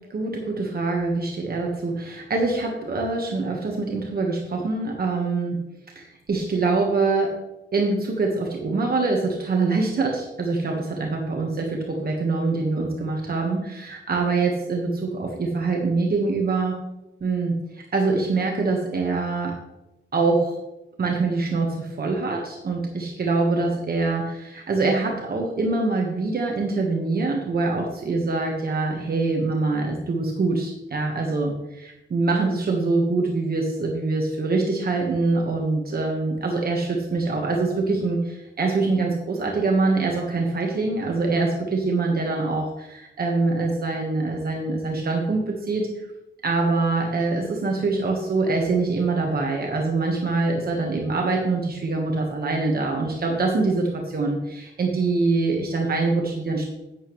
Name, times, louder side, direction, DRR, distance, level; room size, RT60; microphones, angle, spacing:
voice 1, 0.1-5.6 5.9-7.4 7.7-16.8 17.2-19.6 20.1-20.6 21.0-45.9 46.4-56.7, right 3 dB, 45° right, 0 dB, 1.3 m, -24 dB
11.0 x 8.7 x 3.1 m, 0.94 s
wide cardioid pair, 175°, 21 cm